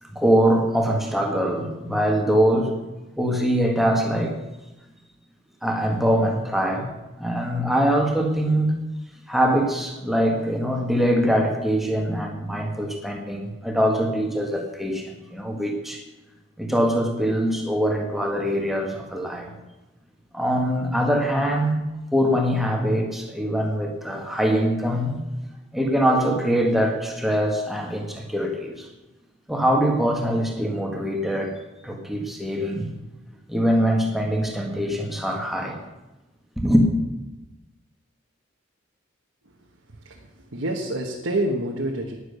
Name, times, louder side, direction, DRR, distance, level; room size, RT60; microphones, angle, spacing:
voice 1, 0.2-2.7 3.2-4.3 5.6-6.9 7.2-8.8 9.3-16.0 16.6-19.5 20.3-21.7 22.1-25.2 25.7-28.9 29.5-31.5 31.8-32.9 33.5-35.8 36.6-36.9, equal, ahead, 1 dB, 1.8 m, -23 dB
voice 2, 40.0-42.1, right 1 dB, 75° right, 0 dB, 1.4 m, -27 dB
11.0 x 10.0 x 6.8 m, 1.0 s
head